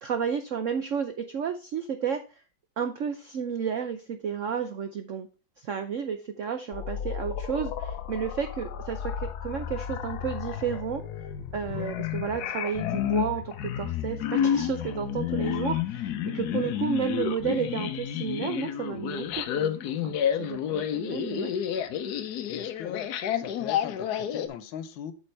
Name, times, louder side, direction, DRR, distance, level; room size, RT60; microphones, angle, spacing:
voice 1, 0.0-2.2 2.8-5.3 5.6-11.0 11.5-21.5, right 7 dB, 75° right, 8 dB, 0.7 m, -32 dB
sound 1, 6.7-24.5, left 9 dB, 65° left, 1.1 m, -31 dB
voice 2, 22.5-25.1, left 9 dB, 80° left, 12 dB, 1.6 m, -40 dB
8.5 x 6.1 x 3.2 m, 0.33 s
omnidirectional pair, 2.1 m